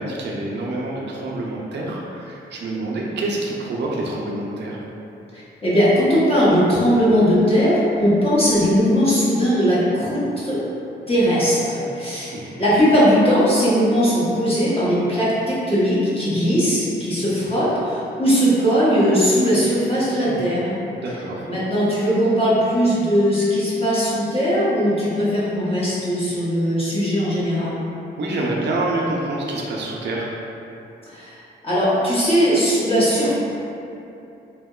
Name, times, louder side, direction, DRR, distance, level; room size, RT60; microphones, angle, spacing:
voice 1, 0.0-4.8 12.3-12.5 20.2-20.4 21.0-21.5 28.2-30.3, right 2 dB, 70° right, -3 dB, 0.4 m, -27 dB
voice 2, 5.3-10.6 11.1-20.8 21.5-27.8 31.1-31.4 31.6-33.3, equal, 30° left, -10 dB, 0.7 m, -19 dB
2.7 x 2.1 x 2.2 m, 2.8 s
wide cardioid pair, 125°, 19 cm